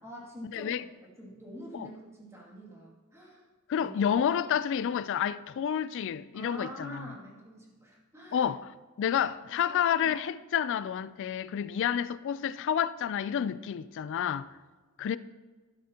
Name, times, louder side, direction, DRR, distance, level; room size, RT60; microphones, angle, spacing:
voice 1, 0.0-3.4 3.8-3.9 6.3-8.5 9.5-10.1, equal, 15° right, 2.5 m, -46 dB
voice 2, 0.5-0.8 1.7-1.9 3.7-7.1 8.3-8.7 9.0-14.5 15.0-15.2, left 8 dB, 60° left, 0.3 m, -29 dB
12.0 x 11.0 x 2.9 m
head